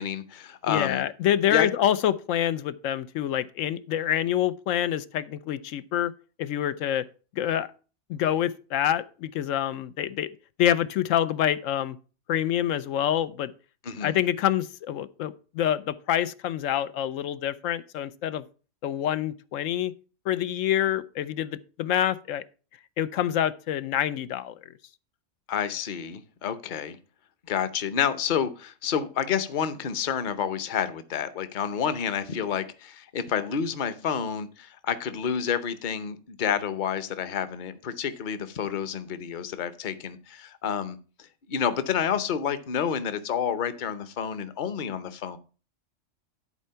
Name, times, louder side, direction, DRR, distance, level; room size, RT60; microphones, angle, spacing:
voice 1, 0.0-1.0 1.5-1.7 13.8-14.1 25.5-27.0 27.5-41.0 41.5-45.4, left 8 dB, 45° left, 0.8 m, -29 dB
voice 2, 0.7-6.1 6.4-7.0 7.4-7.7 8.1-10.3 10.6-12.0 12.3-13.5 14.0-18.4 18.8-19.9 20.3-22.4 23.0-24.6, left 11 dB, 90° left, 1.0 m, -26 dB
11.0 x 4.5 x 5.6 m
omnidirectional pair, 1.3 m